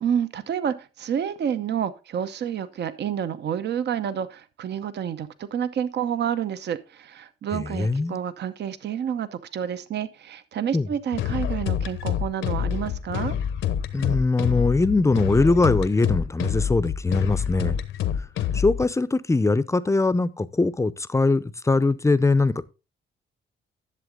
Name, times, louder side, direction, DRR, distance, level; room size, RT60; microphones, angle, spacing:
voice 1, 0.0-13.4, right 8 dB, 60° right, 0.8 m, -29 dB
voice 2, 7.5-8.2 10.7-10.9 13.9-17.8 18.5-22.6, left 3 dB, 15° left, 0.6 m, -22 dB
sound 1, 11.1-18.8, left 9 dB, 80° left, 1.1 m, -27 dB
11.0 x 7.4 x 3.7 m
cardioid pair, 90°, 20 cm